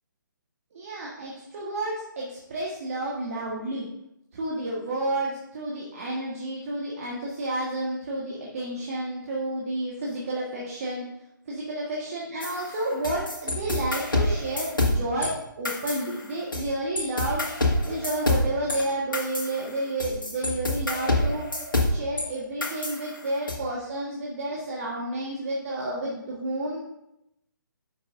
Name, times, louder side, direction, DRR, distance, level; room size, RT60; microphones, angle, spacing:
voice 1, 0.7-3.9 4.3-11.0 11.5-17.4 17.9-21.4 21.9-26.8, right 1 dB, 40° right, -4 dB, 1.5 m, -31 dB
sound 1, 12.4-15.3 15.6-16.7 17.0-22.3 22.6-23.6, left 2 dB, 75° left, 1.8 m, -27 dB
9.7 x 6.4 x 2.6 m, 0.83 s
figure-of-eight pair, 140°, 11 cm